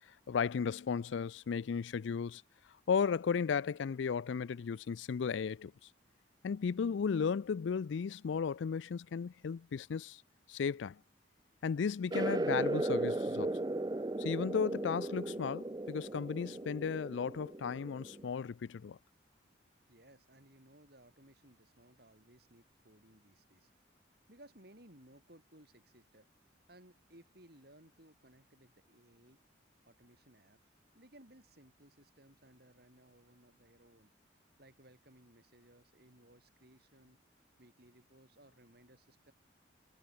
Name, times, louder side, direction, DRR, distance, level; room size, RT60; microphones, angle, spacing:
voice 1, 0.3-2.4 2.9-5.7 6.4-10.2 10.5-11.0 11.6-13.6 14.2-19.0, left 6 dB, 75° left, 0.4 m, -35 dB
sound 1, 12.1-18.3, right 2 dB, 20° right, 0.5 m, -36 dB
voice 2, 19.9-23.7 24.3-26.3 26.7-29.4 29.9-30.6 30.9-34.1 34.6-37.2 37.6-39.3, right 1 dB, 55° right, 5.7 m, -61 dB
head